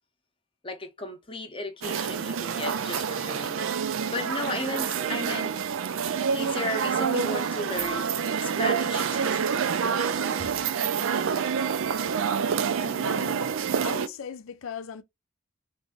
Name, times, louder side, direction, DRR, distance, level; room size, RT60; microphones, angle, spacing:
voice 1, 0.6-5.5 6.3-8.1 8.4-9.8, left 2 dB, 25° left, 0.7 m, -35 dB
sound 1, 1.8-14.1, right 6 dB, 65° right, 0.4 m, -27 dB
voice 2, 12.8-13.6 13.8-15.0, left 6 dB, 65° left, 0.4 m, -38 dB
3.3 x 2.6 x 3.7 m
head